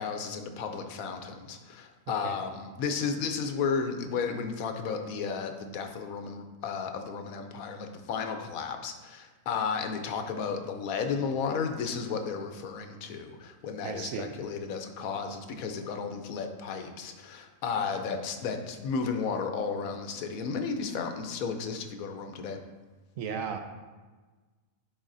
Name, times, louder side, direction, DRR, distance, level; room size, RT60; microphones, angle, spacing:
voice 1, 0.0-22.6, left 5 dB, 80° left, 6 dB, 1.1 m, -33 dB
voice 2, 2.1-2.4 13.8-14.3 23.2-23.6, right 7 dB, 70° right, 5 dB, 1.0 m, -35 dB
10.5 x 4.0 x 2.6 m, 1.3 s
omnidirectional pair, 1.5 m